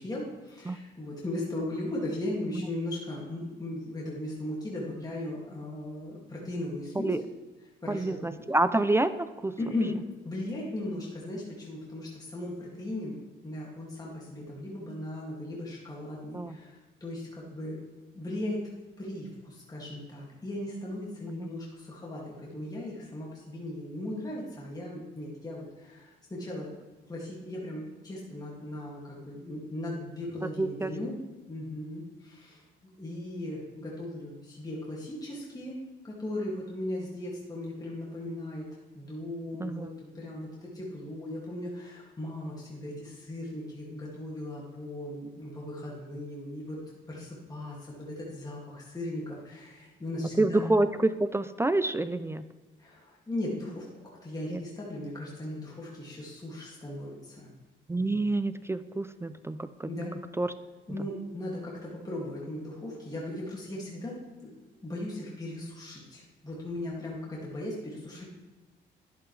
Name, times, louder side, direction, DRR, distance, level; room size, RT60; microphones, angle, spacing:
voice 1, 0.0-7.2 7.6-8.4 9.6-13.2 13.4-17.8 18.1-26.7 27.1-31.2 31.5-32.6 33.0-35.8 36.0-38.7 38.9-50.8 52.8-53.9 54.2-57.5 58.0-58.2 59.8-60.2 60.9-68.3, left 1 dB, 20° left, -5 dB, 2.2 m, -37 dB
voice 2, 7.9-9.5 16.3-16.6 21.4-21.5 30.6-30.9 39.6-39.9 50.4-52.5 54.5-54.6 57.9-59.9 60.4-60.5, right 2 dB, 15° right, 13 dB, 0.4 m, -27 dB
11.0 x 7.7 x 3.3 m, 1.2 s
cardioid pair, 90°, 20 cm